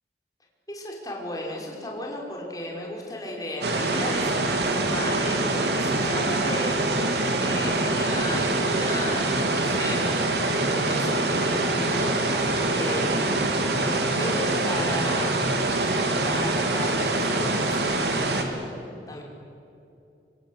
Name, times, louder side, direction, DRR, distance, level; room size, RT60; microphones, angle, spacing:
voice 1, 0.7-6.8 7.3-12.4 12.7-19.2, left 1 dB, 20° left, -1 dB, 5.5 m, -35 dB
sound 1, 3.6-18.4, right 2 dB, 75° right, 3.2 m, -24 dB
26.5 x 25.0 x 8.6 m, 2.7 s
head